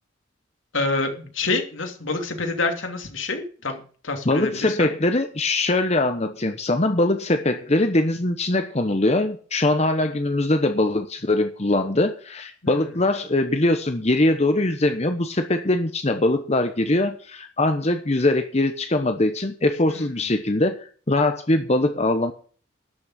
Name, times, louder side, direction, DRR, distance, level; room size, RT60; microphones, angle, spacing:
voice 1, 0.7-4.9 12.6-12.8 20.0-20.1, left 3 dB, 85° left, 3 dB, 2.9 m, -27 dB
voice 2, 4.2-22.3, left 2 dB, 35° left, 7 dB, 1.0 m, -22 dB
12.0 x 6.4 x 9.0 m, 0.41 s
head